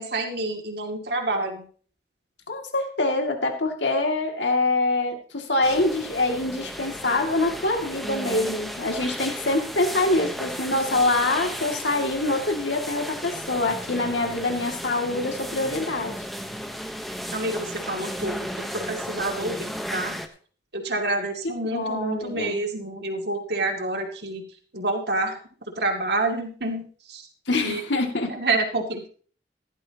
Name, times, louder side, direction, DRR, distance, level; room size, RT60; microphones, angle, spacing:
voice 1, 0.0-1.6 17.3-20.2 20.7-24.4 24.7-25.4 25.8-26.8 27.1-27.3 27.6-27.8 28.3-29.1, right 2 dB, 65° right, 2 dB, 2.5 m, -28 dB
voice 2, 2.5-16.3 21.6-22.6 27.5-28.3, left 2 dB, 85° left, 3 dB, 2.5 m, -25 dB
sound 1, 5.6-20.3, equal, ahead, 1.1 m, -34 dB
16.0 x 12.0 x 3.0 m, 0.43 s
head